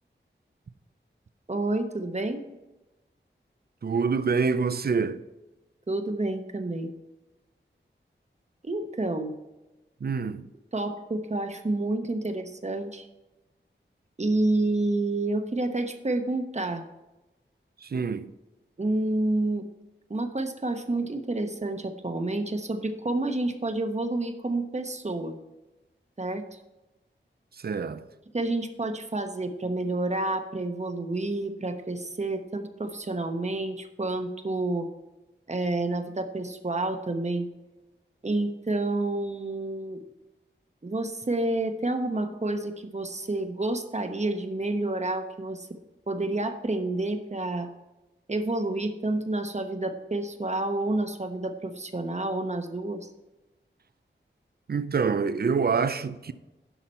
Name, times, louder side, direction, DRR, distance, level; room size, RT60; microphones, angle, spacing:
voice 1, 1.5-2.4 5.9-6.9 8.6-9.3 10.7-13.1 14.2-16.8 18.8-19.7 20.1-25.4 26.2-26.6 28.3-34.9 35.5-37.5 38.2-40.0 40.8-45.7 46.1-47.7 48.3-53.1, right 2 dB, 35° right, 1.0 m, -29 dB
voice 2, 3.8-5.2 10.0-10.5 17.8-18.3 27.6-28.0 54.7-56.3, right 5 dB, 50° right, 0.5 m, -26 dB
11.0 x 5.9 x 4.4 m
wide cardioid pair, 75°, 20 cm